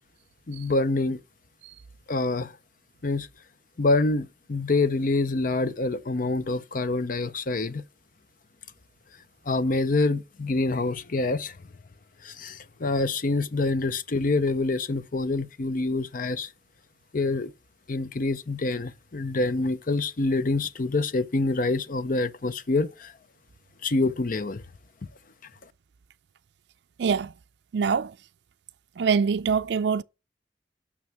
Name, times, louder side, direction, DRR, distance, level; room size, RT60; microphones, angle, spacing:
voice 1, 0.5-1.2 2.1-2.5 3.0-3.3 3.8-7.8 9.5-11.5 12.2-16.5 17.1-17.5 17.9-23.1 23.8-24.6, left 3 dB, 50° left, 0.6 m, -26 dB
voice 2, 27.0-27.3 27.7-28.1 29.0-30.0, right 6 dB, 70° right, 0.4 m, -24 dB
9.4 x 6.2 x 5.7 m
head